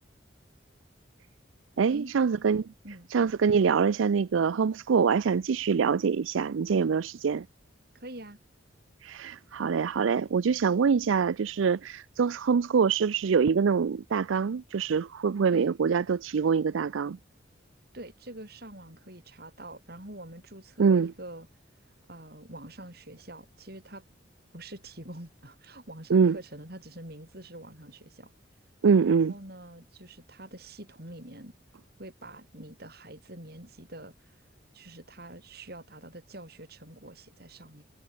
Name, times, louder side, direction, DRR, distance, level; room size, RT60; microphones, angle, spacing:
voice 1, 1.8-2.7 3.1-7.5 9.0-17.2 20.8-21.1 26.1-26.4 28.8-29.3, right 6 dB, 90° right, 0.4 m, -24 dB
voice 2, 7.9-8.4 15.5-15.7 17.9-21.5 22.1-24.0 24.5-28.3 29.0-31.6 32.0-34.5 34.7-37.8, right 1 dB, 55° right, 7.1 m, -45 dB
head